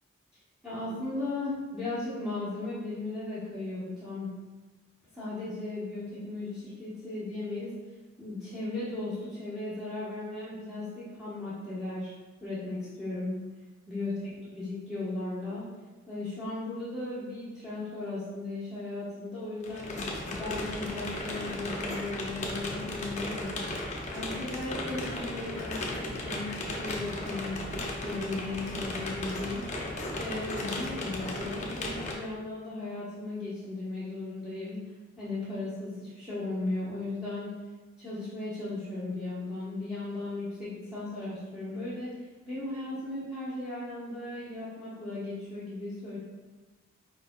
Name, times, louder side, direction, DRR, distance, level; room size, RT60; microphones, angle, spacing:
voice 1, 0.6-4.3 5.1-7.7 8.2-12.1 12.4-13.4 13.9-15.7 16.1-23.6 24.1-34.9 35.2-37.6 38.0-46.2, left 2 dB, 5° right, -13 dB, 1.1 m, -36 dB
sound 1, 19.6-32.1, left 1 dB, 35° left, 0.7 m, -35 dB
5.0 x 4.6 x 2.3 m, 1.2 s
head